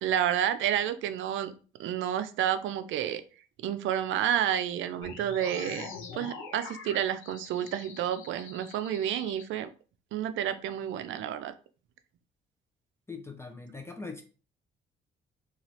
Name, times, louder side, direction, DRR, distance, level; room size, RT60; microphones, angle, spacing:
voice 1, 0.0-1.5 1.8-3.2 3.6-5.9 6.1-9.7 10.1-11.5, right 10 dB, 75° right, 11 dB, 0.4 m, -30 dB
sound 1, 5.0-9.4, left 5 dB, 85° left, 0.7 m, -44 dB
voice 2, 13.1-14.2, left 4 dB, 15° left, 4 dB, 0.5 m, -41 dB
2.7 x 2.4 x 3.0 m, 0.37 s
cardioid pair, 90°, 20 cm